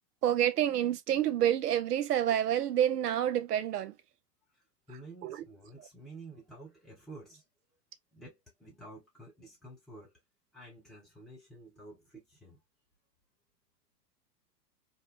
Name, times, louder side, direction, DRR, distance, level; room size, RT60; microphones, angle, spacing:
voice 1, 0.2-3.9 5.2-5.4, right 11 dB, 70° right, 0.6 m, -28 dB
voice 2, 4.5-7.4 8.1-10.1 10.5-12.6, right 2 dB, ahead, 0.4 m, -51 dB
2.5 x 2.1 x 2.3 m
figure-of-eight pair, 100°, 49 cm